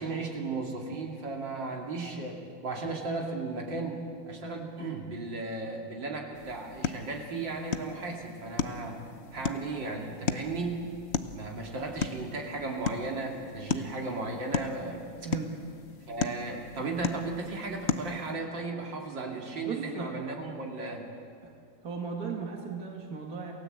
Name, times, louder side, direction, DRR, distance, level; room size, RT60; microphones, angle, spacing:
voice 1, 0.0-9.0 9.3-10.9 11.3-15.0 16.1-21.1, right 3 dB, 65° right, 0 dB, 3.2 m, -35 dB
sound 1, 6.3-18.3, left 6 dB, 50° left, 0.8 m, -36 dB
voice 2, 19.6-20.1 21.8-23.5, right 5 dB, 45° right, 1 dB, 2.5 m, -36 dB
28.0 x 17.0 x 8.0 m, 2.4 s
omnidirectional pair, 2.2 m